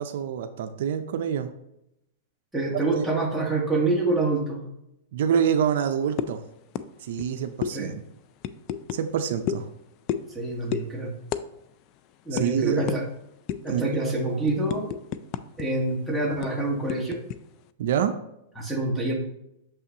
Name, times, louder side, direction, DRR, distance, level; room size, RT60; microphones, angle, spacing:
voice 1, 0.0-1.5 2.7-3.1 5.1-6.4 7.0-8.0 8.9-9.7 12.3-12.9 13.7-14.5 17.8-18.1, right 8 dB, 65° right, 8 dB, 0.5 m, -27 dB
voice 2, 2.5-4.6 7.7-7.9 10.3-11.1 12.3-13.0 13.6-14.9 15.6-17.2 18.6-19.1, right 2 dB, ahead, -4 dB, 1.3 m, -26 dB
sound 1, 6.2-6.4 6.8-6.9 7.1-7.3 7.6-7.7 8.4-9.0 9.5-9.7 10.1-10.4 10.7-10.9 11.3-11.5 11.7-11.9 12.4-12.5 12.9-13.0 13.5-13.8 14.2-15.6 15.9-16.0 16.4-17.4, left 10 dB, 40° left, 0.3 m, -30 dB
6.7 x 5.6 x 2.8 m, 0.82 s
hypercardioid pair, 145°, 0 cm